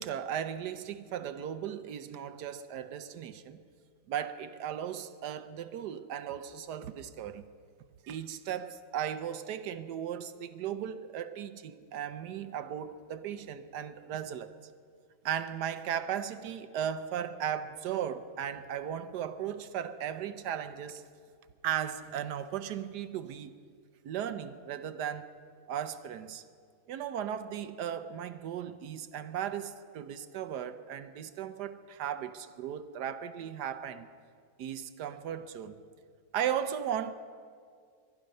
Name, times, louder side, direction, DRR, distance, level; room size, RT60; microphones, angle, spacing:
voice 1, 0.0-3.6 4.1-7.5 8.0-14.5 15.2-21.0 21.6-23.5 24.0-25.3 25.7-26.4 26.9-34.1 34.6-35.8 36.3-37.1, right 9 dB, 70° right, 1.1 m, -36 dB
21.5 x 11.5 x 5.4 m
omnidirectional pair, 2.2 m